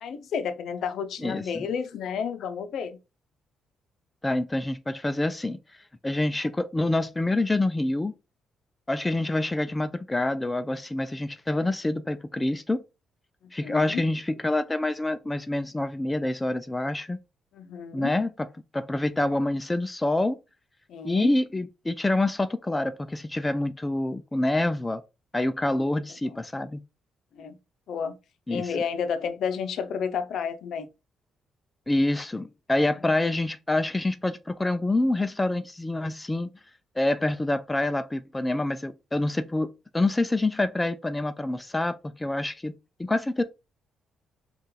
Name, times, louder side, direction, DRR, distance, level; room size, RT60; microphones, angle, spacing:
voice 1, 0.0-3.0 13.6-14.0 17.5-18.1 20.9-21.3 26.2-26.4 27.3-27.6 27.9-28.2 28.5-30.9 33.0-33.3, left 6 dB, 70° left, 0.5 m, -31 dB
voice 2, 1.2-1.7 4.2-5.6 6.0-8.1 8.9-12.8 13.5-17.2 17.9-18.3 18.7-20.4 21.0-25.0 25.3-26.8 28.5-28.7 31.9-36.5 37.0-42.7 43.0-43.4, left 2 dB, 15° left, 0.3 m, -26 dB
4.4 x 2.4 x 3.2 m
cardioid pair, 90°, 0 cm